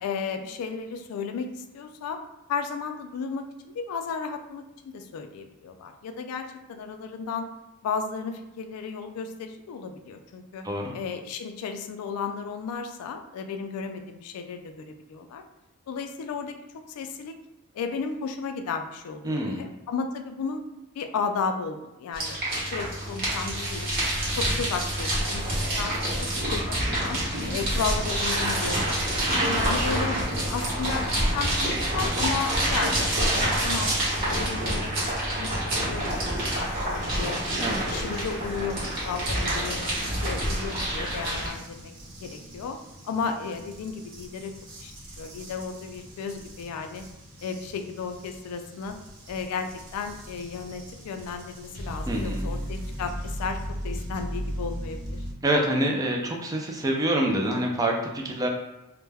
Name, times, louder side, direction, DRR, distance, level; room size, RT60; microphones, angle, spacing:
voice 1, 0.0-2.2 2.5-7.5 7.8-10.7 10.9-15.4 15.9-16.6 16.9-17.3 17.7-20.6 20.9-22.4 22.7-23.9 24.4-25.5 25.8-27.2 27.5-30.1 30.5-31.1 31.3-34.0 34.3-37.4 37.9-39.9 40.2-41.9 42.2-42.8 43.0-44.5 44.8-47.1 47.4-49.0 49.3-55.2, left 5 dB, 70° left, 10 dB, 0.3 m, -34 dB
voice 2, 19.2-19.6 37.6-37.8 52.1-52.5 55.4-58.5, right 1 dB, 15° right, 1 dB, 0.3 m, -26 dB
sound 1, 22.1-41.5, right 1 dB, 40° right, 0.9 m, -27 dB
sound 2, 35.9-55.3, equal, 90° right, 0.7 m, -39 dB
2.2 x 2.1 x 3.2 m, 0.96 s
head